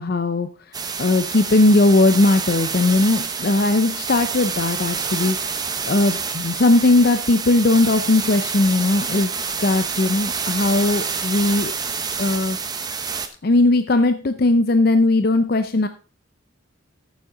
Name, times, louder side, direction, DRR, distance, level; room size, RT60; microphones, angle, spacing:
voice 1, 0.0-5.6 5.9-9.3 9.6-11.7 12.2-12.6 13.4-15.9, left 2 dB, 50° left, 9 dB, 0.6 m, -18 dB
sound 1, 0.7-13.3, right 5 dB, 20° right, 0.9 m, -27 dB
13.5 x 7.3 x 3.8 m, 0.35 s
head